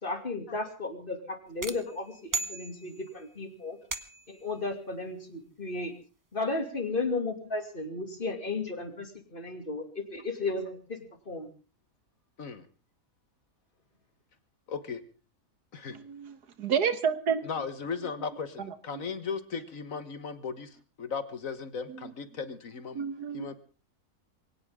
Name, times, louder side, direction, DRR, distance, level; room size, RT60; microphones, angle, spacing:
voice 1, 0.0-3.8 4.3-5.9 6.3-11.0 11.3-11.5, left 3 dB, 35° left, 5 dB, 2.7 m, -34 dB
sound 1, 1.6-3.2 3.9-4.4, right 3 dB, 15° right, 0.8 m, -36 dB
voice 2, 14.7-15.0 15.7-16.0 17.4-23.0 23.3-23.5, left 5 dB, 60° left, 11 dB, 1.7 m, -37 dB
voice 3, 15.9-17.4 18.9-19.0 22.9-23.5, right 7 dB, 85° right, 11 dB, 2.0 m, -29 dB
22.0 x 18.0 x 3.7 m, 0.37 s
omnidirectional pair, 1.7 m